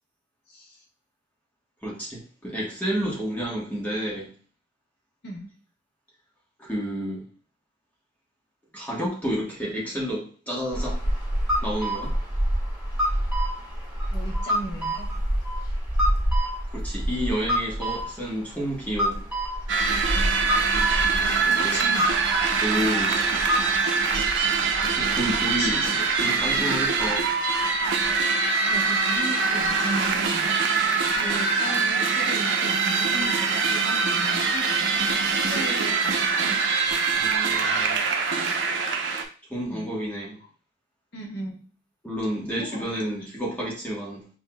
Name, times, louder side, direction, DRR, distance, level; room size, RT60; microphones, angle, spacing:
voice 1, 1.8-4.3 6.6-7.2 8.7-11.0 11.6-12.1 16.7-19.3 21.4-22.0 22.6-23.2 25.0-27.3 37.2-38.1 39.5-40.4 42.0-44.2, equal, 10° left, -5 dB, 1.1 m, -30 dB
sound 1, 10.7-23.7, equal, 15° right, 2.0 m, -27 dB
voice 2, 14.1-15.1 21.1-22.1 25.6-26.1 26.7-26.8 28.7-30.6 31.1-35.0 35.5-36.7 39.7-39.9 41.1-41.6 42.6-43.1, right 1 dB, 65° left, 0 dB, 1.2 m, -37 dB
sound 2, 19.7-39.2, right 4 dB, 90° right, 0.6 m, -23 dB
5.9 x 2.7 x 2.2 m, 0.39 s
head